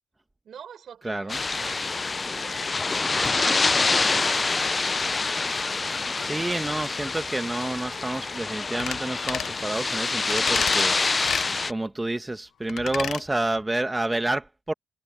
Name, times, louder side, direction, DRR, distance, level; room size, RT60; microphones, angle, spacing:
voice 1, 0.4-1.9 2.2-2.8 3.2-4.8, right 8 dB, 60° right, 4.7 m, -43 dB
voice 2, 1.0-1.4 6.2-11.0 11.7-14.7, right 2 dB, 15° right, 1.6 m, -29 dB
sound 1, 1.3-11.7, left 4 dB, 30° left, 0.4 m, -26 dB
sound 2, 8.8-9.0 9.3-9.6 10.3-10.8 11.2-11.5 12.7-13.2 13.6-13.7, left 10 dB, 70° left, 0.9 m, -31 dB
cardioid pair, 90°, 0 cm